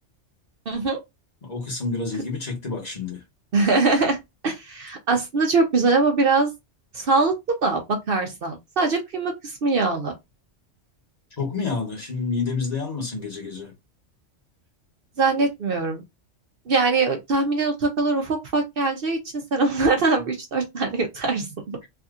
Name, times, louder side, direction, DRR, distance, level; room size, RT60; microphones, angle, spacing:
voice 1, 0.7-1.0 3.5-4.2 4.4-6.5 6.9-7.8 8.1-10.1 15.2-16.0 16.7-19.2 19.5-21.8, right 3 dB, 55° right, 0.8 m, -22 dB
voice 2, 1.4-3.2 11.4-13.7, left 4 dB, 35° left, 1.1 m, -29 dB
3.4 x 2.7 x 2.4 m
omnidirectional pair, 1.2 m